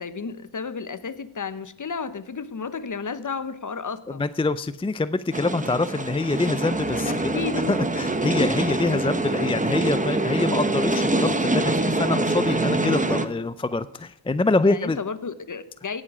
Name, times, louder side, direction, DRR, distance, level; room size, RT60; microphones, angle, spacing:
voice 1, 0.0-4.3 7.1-7.6 14.6-16.0, left 5 dB, 40° left, 13 dB, 1.1 m, -32 dB
voice 2, 4.2-7.3 7.7-15.0, left 3 dB, 10° left, 13 dB, 0.4 m, -25 dB
sound 1, 5.3-13.3, right 2 dB, 15° right, 1.1 m, -24 dB
16.5 x 7.5 x 4.9 m, 0.79 s
cardioid pair, 70°, 49 cm